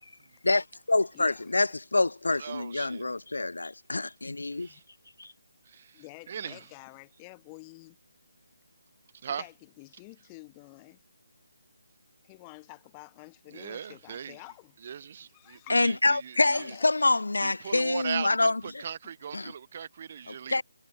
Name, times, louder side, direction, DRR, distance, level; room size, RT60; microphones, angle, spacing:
voice 1, 0.4-4.7 5.2-5.3 15.7-18.8 19.3-19.5 20.3-20.6, left 2 dB, 70° left, 0.3 m, -26 dB
voice 2, 1.1-1.6 4.7-4.8 5.9-8.0 9.2-11.0 12.2-14.8 15.3-15.9 16.5-16.9, left 30 dB, 20° left, 0.8 m, -49 dB
voice 3, 2.4-3.0 4.5-4.8 5.7-6.6 9.2-9.4 13.5-14.4 14.8-16.7 17.4-20.6, right 8 dB, 35° right, 0.4 m, -39 dB
figure-of-eight pair, 150°, 0 cm